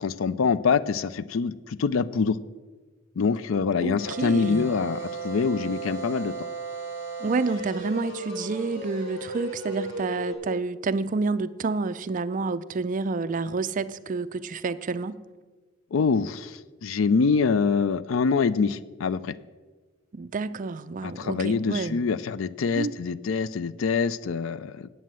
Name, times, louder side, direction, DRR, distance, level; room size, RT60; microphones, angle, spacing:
voice 1, 0.0-2.4 3.2-6.3 15.9-19.4 21.0-24.9, left 5 dB, 85° left, 17 dB, 0.4 m, -25 dB
voice 2, 3.8-4.7 7.2-15.2 20.1-22.0 22.8-23.0, right 4 dB, 40° right, 14 dB, 0.4 m, -29 dB
sound 1, 4.0-10.3, right 3 dB, 65° left, 4.3 m, -35 dB
9.4 x 8.2 x 7.5 m, 1.4 s
head